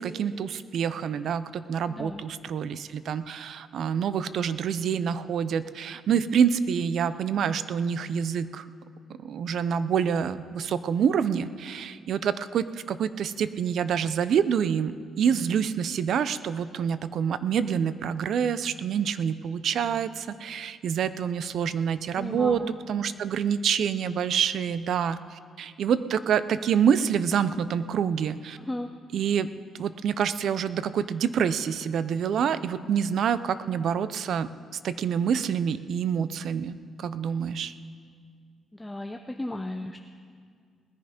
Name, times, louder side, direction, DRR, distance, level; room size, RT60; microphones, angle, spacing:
voice 1, 0.0-8.7 9.2-22.6 22.9-28.6 29.1-29.5 29.8-37.7, right 7 dB, 65° right, 14 dB, 0.5 m, -27 dB
voice 2, 1.9-2.2 22.1-22.8 28.6-28.9 38.7-40.0, left 1 dB, 10° left, 5 dB, 0.6 m, -35 dB
19.5 x 10.5 x 5.1 m, 2.1 s
cardioid pair, 90°, 0 cm